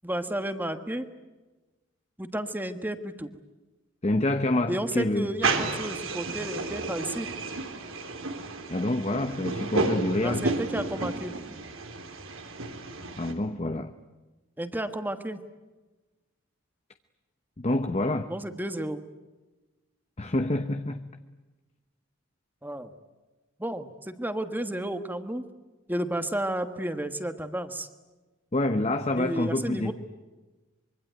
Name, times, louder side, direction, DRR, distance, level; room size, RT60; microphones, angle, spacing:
voice 1, 0.0-1.1 2.2-3.3 4.7-7.3 10.2-11.4 14.6-15.4 18.3-19.0 22.6-22.9 23.6-25.4 25.9-27.9 29.2-29.9, right 1 dB, 10° right, 1.4 m, -32 dB
voice 2, 4.0-5.3 8.7-10.4 13.2-13.9 17.6-18.3 20.2-21.0 28.5-29.9, left 1 dB, 30° left, 0.9 m, -27 dB
sound 1, 5.4-13.3, right 3 dB, 80° right, 3.5 m, -32 dB
25.0 x 23.5 x 9.3 m
head